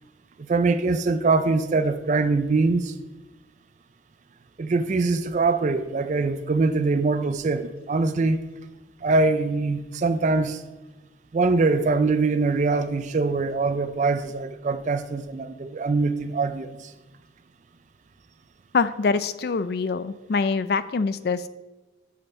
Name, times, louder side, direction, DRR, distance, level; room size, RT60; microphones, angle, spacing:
voice 1, 0.4-2.9 4.6-8.4 9.0-10.6 11.3-16.9, right 3 dB, 40° right, 11 dB, 0.3 m, -23 dB
voice 2, 18.7-21.5, left 4 dB, 55° left, 14 dB, 0.4 m, -24 dB
6.5 x 5.5 x 6.8 m, 1.2 s
head